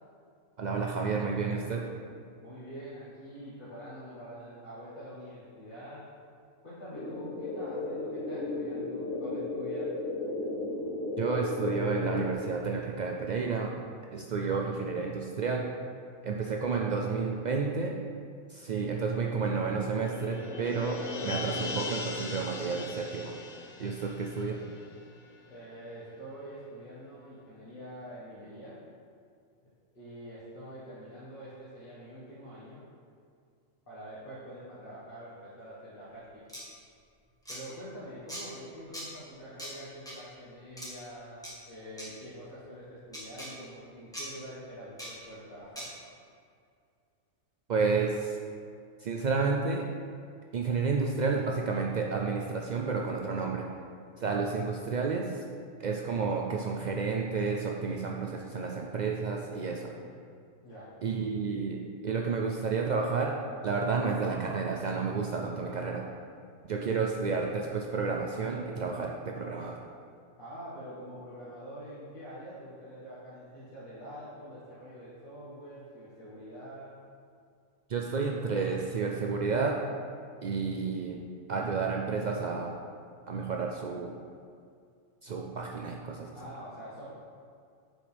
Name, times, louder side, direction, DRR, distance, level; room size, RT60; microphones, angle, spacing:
voice 1, 0.6-1.8 11.2-13.7 14.1-15.7 16.2-17.9 18.5-23.3 23.8-24.6 47.7-48.4 49.0-49.8 50.5-53.6 54.2-55.4 55.8-59.9 61.0-63.3 63.6-66.0 66.7-69.8 77.9-79.8 80.4-81.2 81.5-82.8 83.3-84.2 85.2-86.3, right 4 dB, 80° right, 0 dB, 0.4 m, -31 dB
voice 2, 2.4-6.1 6.6-9.9 25.5-28.8 29.9-32.8 33.9-36.5 37.5-41.4 41.7-45.9 59.9-60.2 60.6-60.9 66.8-67.1 70.4-77.0 86.3-87.1, equal, 40° left, -11 dB, 1.8 m, -45 dB
sound 1, 6.9-12.3, left 2 dB, 80° left, 1.3 m, -34 dB
sound 2, 18.7-25.7 26.0-26.1, left 3 dB, 65° left, 1.1 m, -40 dB
sound 3, 36.5-36.6 37.4-37.6 38.3-38.4 38.9-39.1 39.6-39.7 40.1-40.2 40.8-40.9 41.4-41.5 42.0-42.1 43.1-43.5 44.1-44.3 45.0-45.1 45.8-45.9, equal, 5° left, 1.6 m, -40 dB
7.9 x 6.3 x 3.4 m, 2.3 s
omnidirectional pair, 1.4 m